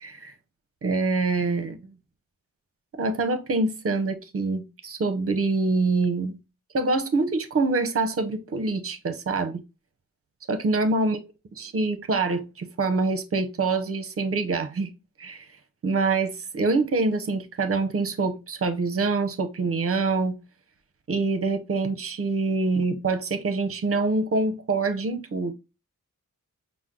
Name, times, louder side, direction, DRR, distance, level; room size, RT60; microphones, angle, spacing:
voice 1, 0.0-0.3 0.8-1.8 2.9-6.4 6.7-9.5 10.5-11.2 11.6-14.9 15.2-15.5 15.8-20.4 21.1-25.5, right 3 dB, 45° right, 0.7 m, -25 dB
6.0 x 2.0 x 3.6 m
wide cardioid pair, 135°, 33 cm